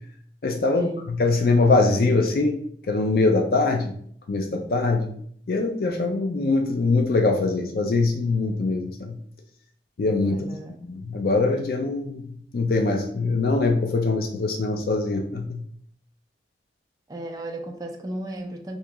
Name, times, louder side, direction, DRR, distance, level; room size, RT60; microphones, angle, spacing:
voice 1, 0.4-2.6 2.9-3.9 4.3-5.1 5.5-9.2 10.0-10.5 10.9-12.2 12.5-15.6, left 3 dB, 55° left, 3 dB, 0.4 m, -22 dB
voice 2, 10.3-10.8 17.1-18.8, right 1 dB, 20° right, 2 dB, 0.4 m, -35 dB
3.0 x 2.7 x 3.3 m, 0.62 s
head